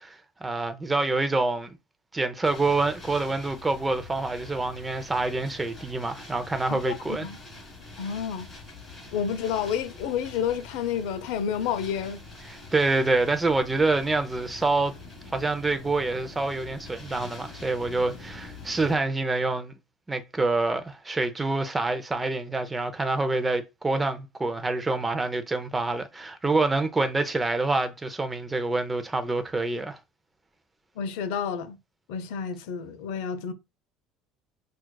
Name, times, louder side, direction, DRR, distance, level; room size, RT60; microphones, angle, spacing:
voice 1, 0.0-1.7 2.1-7.3 12.5-14.9 15.3-19.7 20.1-30.0, right 3 dB, 15° right, 0.5 m, -26 dB
sound 1, 2.4-19.0, left 2 dB, 15° left, 2.0 m, -45 dB
voice 2, 6.7-7.4 8.0-8.5 9.1-12.2 31.0-31.8 32.1-33.5, left 7 dB, 85° left, 0.5 m, -30 dB
5.9 x 2.4 x 2.2 m
cardioid pair, 125°, 0 cm